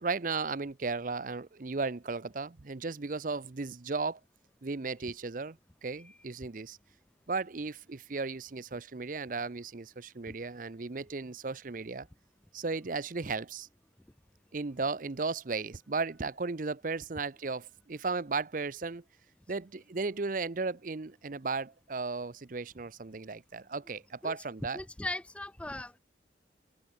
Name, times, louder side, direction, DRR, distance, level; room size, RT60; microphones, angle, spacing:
voice 1, 0.0-4.2 4.6-6.8 7.3-12.1 12.5-13.7 14.5-19.0 19.5-24.8, right 4 dB, 50° right, 0.7 m, -35 dB
voice 2, 24.7-26.0, left 1 dB, 5° left, 0.4 m, -38 dB
open air
head